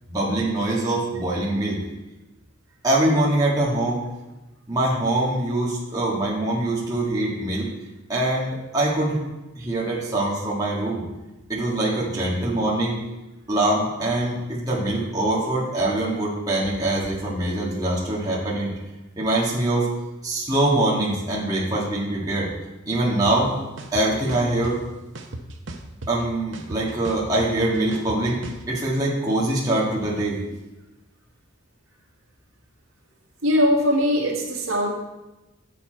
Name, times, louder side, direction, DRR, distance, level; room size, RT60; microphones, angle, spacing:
voice 1, 0.1-1.8 2.8-4.0 4.7-7.7 8.1-9.2 9.6-11.0 11.5-13.0 13.5-18.7 19.2-19.9 20.2-22.5 22.9-23.5 23.9-24.8 26.1-28.4 28.7-30.4, right 1 dB, 15° right, -6 dB, 1.5 m, -23 dB
sound 1, 23.3-23.4 23.8-24.7 25.1-26.2 26.5-28.6, right 2 dB, 60° right, 0.8 m, -35 dB
voice 2, 33.4-34.9, equal, 80° right, -1 dB, 1.7 m, -20 dB
7.1 x 7.0 x 4.5 m, 1.0 s
head